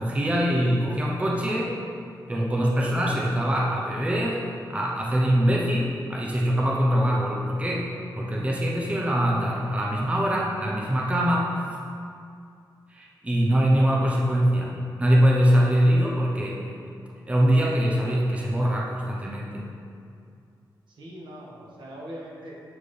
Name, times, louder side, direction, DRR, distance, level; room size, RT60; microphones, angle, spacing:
voice 1, 0.0-1.7 2.3-4.4 4.7-11.7 12.9-16.6 17.3-19.7, equal, 15° right, -3 dB, 0.7 m, -23 dB
voice 2, 20.9-22.6, equal, 85° right, -4 dB, 1.4 m, -41 dB
8.5 x 4.4 x 3.2 m, 2.4 s
wide cardioid pair, 160°, 8 cm